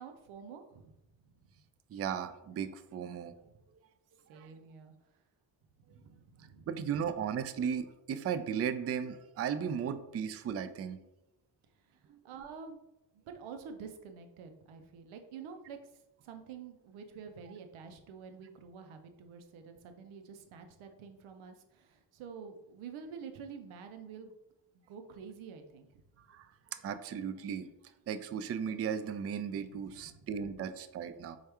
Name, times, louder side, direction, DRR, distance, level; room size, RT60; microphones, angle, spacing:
voice 1, 0.0-1.5 3.4-3.6 4.3-4.9 5.9-6.8 11.8-12.8 13.1-24.3 24.7-25.9 29.5-30.3, right 6 dB, 85° right, 7 dB, 0.6 m, -49 dB
voice 2, 1.9-3.3 4.3-4.5 6.7-11.0 26.3-26.5 26.8-27.7 28.1-31.4, right 7 dB, 35° right, 11 dB, 0.4 m, -36 dB
4.4 x 2.4 x 2.9 m, 0.90 s
supercardioid pair, 45°, 47 cm